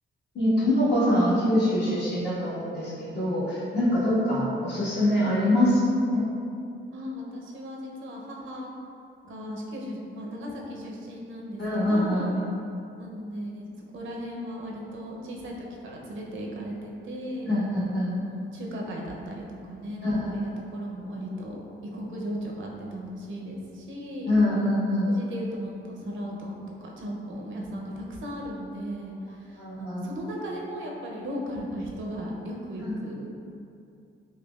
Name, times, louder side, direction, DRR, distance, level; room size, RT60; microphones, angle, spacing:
voice 1, 0.3-5.8 6.1-6.2 11.6-12.5 17.5-18.1 20.0-20.3 24.3-25.1 29.6-30.1 32.9-33.0, left 1 dB, 60° left, -10 dB, 1.4 m, -24 dB
voice 2, 6.9-8.7 9.2-12.3 13.0-17.5 18.3-21.6 21.9-24.3 25.1-33.3, equal, 75° right, -1 dB, 0.6 m, -37 dB
4.9 x 2.3 x 2.3 m, 2.6 s
cardioid pair, 115°, 20 cm